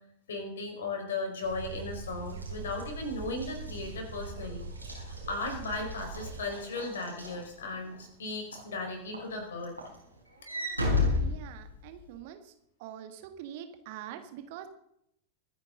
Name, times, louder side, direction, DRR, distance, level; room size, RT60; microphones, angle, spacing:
voice 1, 0.3-9.7, left 2 dB, 65° left, 3 dB, 4.8 m, -36 dB
sound 1, 1.4-6.4, right 3 dB, 70° right, 3.1 m, -42 dB
Walk footsteps / Slam, 2.3-8.0 8.5-8.8 9.1-12.1, left 3 dB, 85° right, 4.4 m, -34 dB
voice 2, 11.2-12.5 12.8-14.7, right 10 dB, 50° right, 8 dB, 1.8 m, -44 dB
24.5 x 9.5 x 3.9 m, 0.73 s
figure-of-eight pair, 90°, 0 cm